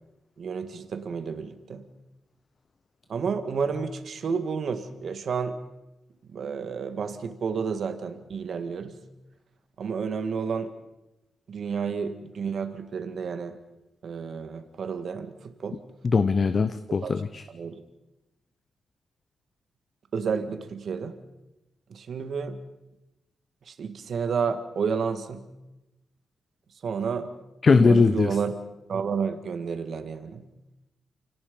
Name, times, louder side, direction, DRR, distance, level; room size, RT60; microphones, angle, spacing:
voice 1, 0.4-1.8 3.1-5.6 6.2-9.0 9.8-10.7 11.5-13.6 14.0-15.8 17.0-17.1 17.5-17.8 20.1-21.2 21.9-22.6 23.7-25.4 26.8-27.3 27.7-28.5 28.9-30.5, right 6 dB, 55° right, 9 dB, 1.8 m, -31 dB
voice 2, 16.0-17.4 27.6-28.3, left 4 dB, 35° left, 12 dB, 0.7 m, -20 dB
28.5 x 18.0 x 5.4 m, 0.96 s
wide cardioid pair, 145°, 0 cm